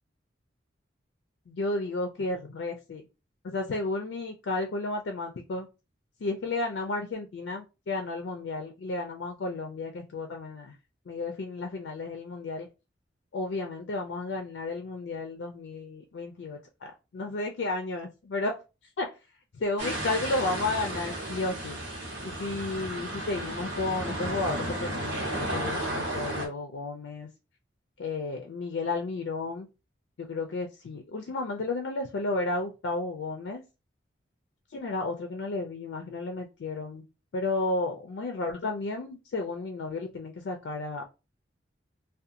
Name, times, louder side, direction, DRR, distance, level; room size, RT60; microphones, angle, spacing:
voice 1, 1.5-3.1 3.4-5.7 6.2-10.8 11.1-12.7 13.3-18.6 19.0-19.1 19.5-21.8 22.2-27.3 28.0-29.7 30.2-33.6 34.7-37.0 37.3-41.1, left 2 dB, 70° left, 4 dB, 0.4 m, -32 dB
sound 1, 19.8-26.5, right 1 dB, 80° right, 1.0 m, -33 dB
2.7 x 2.2 x 2.5 m, 0.28 s
head